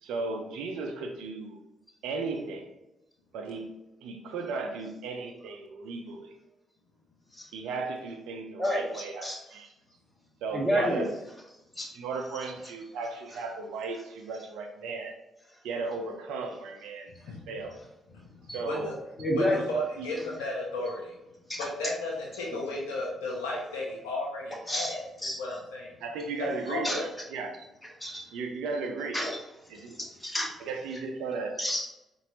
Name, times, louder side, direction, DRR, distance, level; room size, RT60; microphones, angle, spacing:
voice 1, 0.0-1.6 2.0-2.7 3.3-6.3 7.5-9.7 10.4-11.1 11.8-15.2 15.6-17.1 17.5-17.8 18.5-18.9 20.0-20.1 22.5-22.6 26.0-27.7 28.3-29.2 29.7-30.0 30.6-31.6, right 3 dB, 80° right, 4 dB, 0.6 m, -35 dB
voice 2, 8.6-9.4 10.5-11.1 11.8-11.9 19.2-19.7 21.5-21.7 24.7-25.4 26.8-27.1 28.0-28.2 29.1-29.4 30.0-30.5 31.6-31.9, equal, 15° left, -1 dB, 1.4 m, -30 dB
voice 3, 18.1-19.0 19.3-21.2 21.6-25.0 25.3-26.0 26.4-26.9, left 1 dB, 85° left, -4 dB, 0.7 m, -34 dB
4.1 x 2.6 x 3.0 m, 0.93 s
hypercardioid pair, 50°, 0 cm